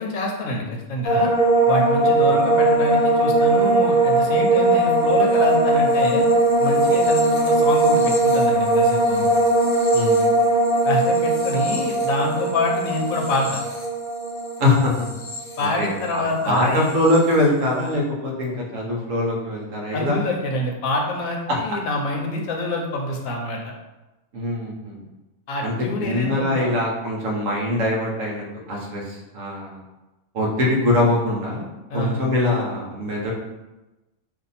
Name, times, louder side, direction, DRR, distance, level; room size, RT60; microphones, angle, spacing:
voice 1, 0.0-1.3 1.7-6.2 6.6-9.3 10.8-13.6 15.6-16.9 19.9-23.7 25.5-26.7 31.9-32.2, left 1 dB, 70° left, 1 dB, 1.0 m, -26 dB
sound 1, 1.0-16.3 16.5-17.2, right 2 dB, 55° left, 0.7 m, -19 dB
voice 2, 9.9-10.3 14.6-15.1 15.6-20.2 21.5-21.6 24.3-25.1 25.6-25.7 26.0-29.8 30.3-31.6 31.9-33.3, left 1 dB, 65° right, -3 dB, 1.1 m, -23 dB
2.6 x 2.6 x 4.0 m, 1.1 s
omnidirectional pair, 1.6 m